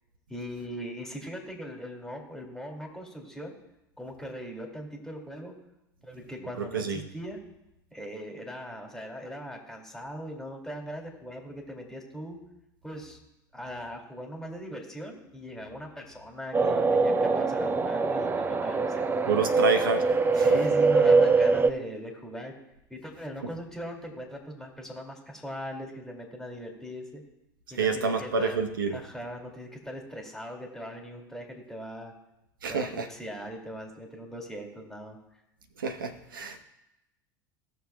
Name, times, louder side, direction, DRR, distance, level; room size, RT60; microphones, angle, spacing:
voice 1, 0.3-3.6 4.0-5.5 6.0-7.4 7.9-12.4 12.8-13.2 13.5-19.5 20.3-22.5 22.9-27.2 27.7-28.6 28.9-32.1 32.7-35.2, equal, 5° left, 1 dB, 2.4 m, -40 dB
voice 2, 6.6-7.0 19.3-20.1 20.3-20.5 27.8-29.0 32.6-33.1 35.8-36.6, right 4 dB, 85° right, 8 dB, 1.0 m, -28 dB
sound 1, 16.5-21.7, right 4 dB, 20° right, 0.6 m, -23 dB
17.0 x 6.4 x 2.3 m, 0.90 s
hypercardioid pair, 80°, 11 cm